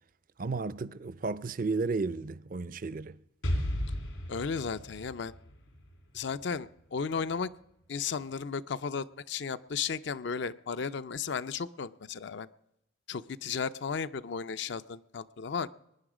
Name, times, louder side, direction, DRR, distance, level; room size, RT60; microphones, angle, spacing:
voice 1, 0.4-3.2, right 4 dB, 40° right, 0.5 m, -33 dB
Explosion, 3.4-7.2, equal, 85° left, 3.1 m, -35 dB
voice 2, 4.3-5.3 6.1-7.5 7.9-12.5 13.1-15.7, left 6 dB, 60° left, 0.5 m, -34 dB
22.0 x 9.9 x 4.9 m
head